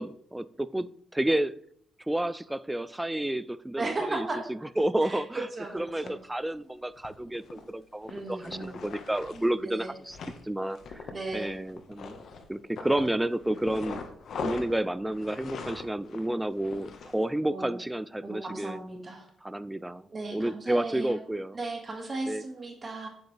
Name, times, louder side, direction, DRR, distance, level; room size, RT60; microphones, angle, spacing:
voice 1, 0.0-1.5 2.1-5.5 5.7-10.2 10.4-14.0 14.4-18.8 19.4-20.0 20.3-21.6 22.3-22.4, right 1 dB, 10° right, 16 dB, 0.4 m, -31 dB
voice 2, 3.8-4.4 5.0-5.2 5.5-6.1 8.1-8.9 9.6-9.9 11.1-11.6 17.5-17.8 18.2-19.3 20.1-21.2 21.5-23.1, right 2 dB, 30° right, 2 dB, 1.8 m, -36 dB
sound 1, 5.8-6.1 6.9-7.6 8.0-9.5 9.9-10.4 10.7-12.4 12.8-17.2, left 5 dB, 60° left, 1.3 m, -41 dB
8.9 x 8.0 x 3.3 m, 0.66 s
cardioid pair, 90°, 0 cm